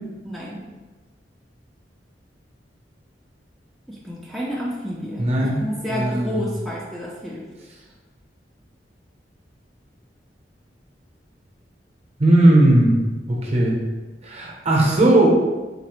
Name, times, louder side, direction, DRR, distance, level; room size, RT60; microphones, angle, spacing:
voice 1, 0.2-0.7 3.9-7.5, equal, ahead, -6 dB, 0.3 m, -30 dB
voice 2, 5.2-5.6 5.9-6.4 12.2-12.9 13.3-13.8 14.2-15.3, right 1 dB, 35° right, -2 dB, 0.7 m, -17 dB
3.9 x 2.0 x 2.9 m, 1.2 s
head